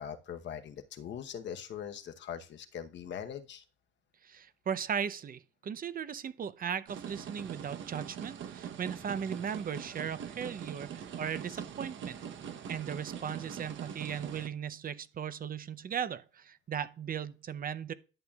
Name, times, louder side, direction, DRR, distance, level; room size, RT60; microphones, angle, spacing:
voice 1, 0.0-3.6 11.5-11.6, left 8 dB, 65° left, 1.0 m, -41 dB
voice 2, 4.2-12.2 12.7-17.9, right 8 dB, 45° right, 0.7 m, -37 dB
sound 1, 6.9-14.5, right 8 dB, 75° right, 1.0 m, -42 dB
11.0 x 7.0 x 2.4 m
cardioid pair, 90°, 20 cm